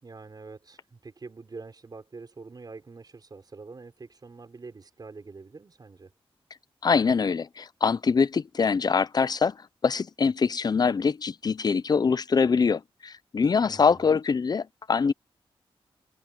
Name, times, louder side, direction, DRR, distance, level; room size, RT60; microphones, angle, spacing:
voice 1, 0.0-6.1 13.6-14.2, right 4 dB, 40° right, 5.3 m, -45 dB
voice 2, 6.8-9.6 9.8-15.1, left 5 dB, 40° left, 0.6 m, -24 dB
cardioid pair, 85°, 10 cm